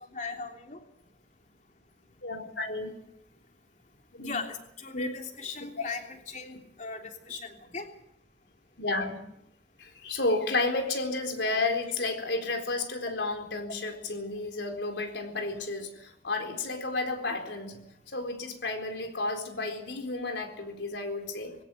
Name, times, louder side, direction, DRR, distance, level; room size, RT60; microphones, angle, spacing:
voice 1, 0.1-0.8 4.2-7.9 11.4-11.7, left 4 dB, 45° left, 3 dB, 3.2 m, -39 dB
voice 2, 2.2-2.9 4.1-4.4 4.9-5.1 8.8-9.2 9.8-17.8 18.1-21.5, left 2 dB, 85° left, 4 dB, 4.2 m, -32 dB
21.0 x 17.0 x 8.4 m, 0.77 s
head